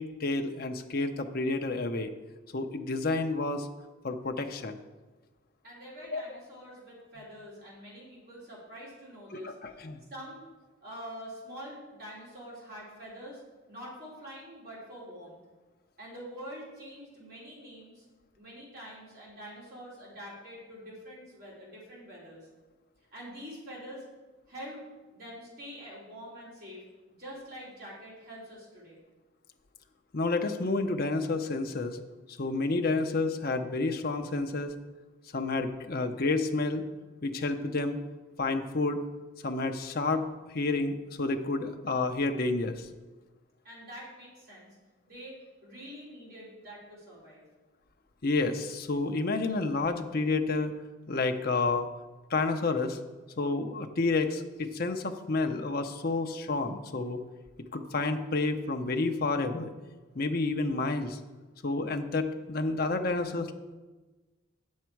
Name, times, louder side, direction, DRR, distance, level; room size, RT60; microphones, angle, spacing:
voice 1, 0.0-2.1 2.5-3.7 4.0-4.8 6.1-6.4 9.3-10.0 30.1-32.0 32.4-34.7 35.3-36.9 37.2-38.0 38.4-39.0 39.4-40.3 40.5-42.9 48.2-50.7 51.1-51.9 52.3-53.0 53.4-57.2 57.7-59.7 60.1-61.2 61.6-63.5, left 3 dB, 45° left, 6 dB, 0.7 m, -30 dB
voice 2, 5.6-9.5 10.1-10.5 10.8-13.4 13.7-15.4 16.0-18.1 18.4-22.5 23.1-24.0 24.5-24.8 25.1-26.8 27.2-29.0 43.6-44.8 45.0-47.4, equal, 45° right, -6 dB, 2.8 m, -45 dB
9.2 x 7.4 x 4.6 m, 1.2 s
head